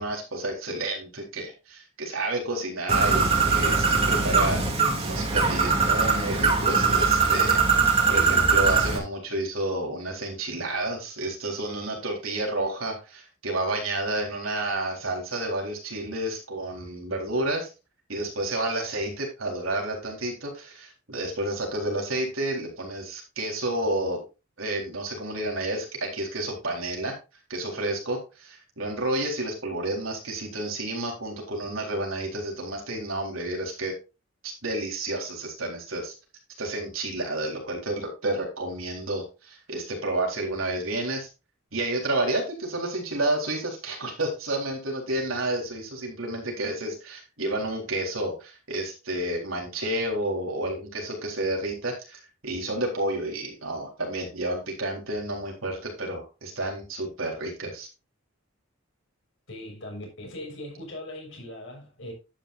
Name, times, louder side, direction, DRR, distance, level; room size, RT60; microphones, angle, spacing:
voice 1, 0.0-4.6 5.0-7.6 8.1-17.7 18.1-24.2 24.6-27.1 27.5-34.0 34.4-36.1 36.6-41.3 41.7-57.9, right 1 dB, 80° right, 3.9 m, -30 dB
Bird, 2.9-9.0, right 4 dB, 30° right, 2.5 m, -21 dB
voice 2, 59.5-62.1, left 1 dB, 65° left, 6.4 m, -39 dB
11.5 x 9.7 x 2.6 m
head